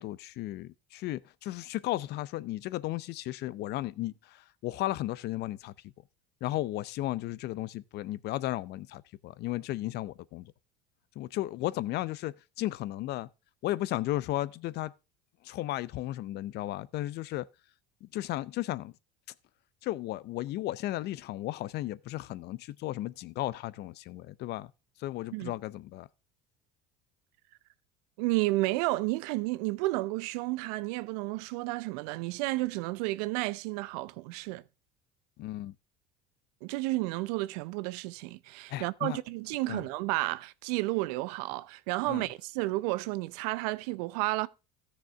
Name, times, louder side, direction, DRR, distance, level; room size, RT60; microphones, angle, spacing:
voice 1, 0.0-5.7 6.4-10.5 11.2-13.3 13.6-14.9 15.4-17.5 18.0-18.9 19.8-24.7 25.0-26.1 35.4-35.7 38.7-39.2 39.7-39.8 42.1-42.3, left 16 dB, 55° left, 0.6 m, -34 dB
voice 2, 28.2-34.6 36.6-44.5, right 21 dB, 80° right, 0.6 m, -31 dB
14.0 x 6.6 x 3.4 m
supercardioid pair, 90°, 20 cm